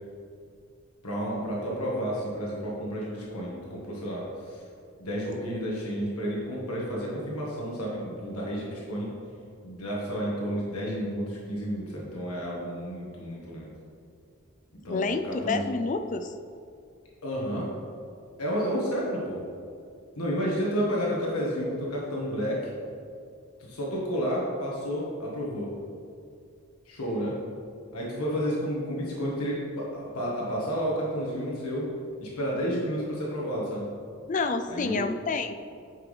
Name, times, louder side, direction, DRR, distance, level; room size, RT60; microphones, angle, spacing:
voice 1, 1.0-4.6 5.0-9.1 9.6-13.7 14.8-15.6 17.2-17.7 18.4-19.5 20.2-22.7 23.6-25.7 26.9-27.4 27.9-31.9 32.2-33.9 34.7-35.1, equal, 85° left, -4 dB, 1.5 m, -31 dB
voice 2, 14.9-16.3 34.3-35.6, left 4 dB, 35° left, 8 dB, 0.3 m, -28 dB
9.0 x 6.1 x 3.3 m, 2.3 s
head